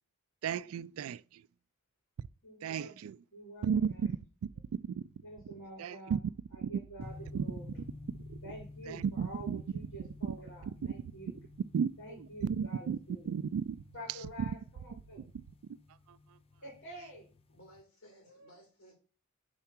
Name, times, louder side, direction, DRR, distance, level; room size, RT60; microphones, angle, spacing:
voice 1, 0.4-1.4 2.6-3.2 3.6-3.8 4.9-5.0 5.8-6.2 6.6-6.7 7.3-7.4 8.3-8.4 8.9-9.6 11.7-11.9 12.2-13.0 13.3-13.8 16.1-16.4, right 7 dB, 70° right, 0.3 m, -34 dB
voice 2, 2.4-3.0 3.3-4.1 5.2-6.2 6.5-7.8 8.4-11.4 12.0-13.4 13.9-15.3 16.6-17.3 18.2-18.6, right 1 dB, 60° left, 3.4 m, -48 dB
sound 1, 7.0-17.8, left 2 dB, 25° left, 0.4 m, -51 dB
voice 3, 17.5-19.0, equal, 75° left, 3.3 m, -58 dB
4.8 x 4.4 x 5.8 m
head